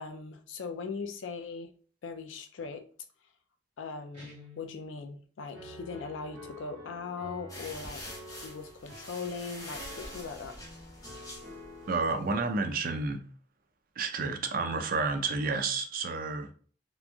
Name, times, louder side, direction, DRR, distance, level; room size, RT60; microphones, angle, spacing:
voice 1, 0.0-1.7 2.0-2.9 3.8-8.0 8.3-10.6, left 5 dB, 85° left, 0.4 m, -40 dB
Guitar, 4.1-4.9, left 2 dB, 30° right, 1.3 m, -51 dB
Piano, 5.5-12.4, equal, 5° right, 1.3 m, -48 dB
sound 1, 7.5-12.2, left 1 dB, 20° left, 0.8 m, -45 dB
voice 2, 11.9-13.2 14.0-16.5, right 4 dB, 50° right, 0.4 m, -30 dB
2.9 x 2.5 x 2.2 m
head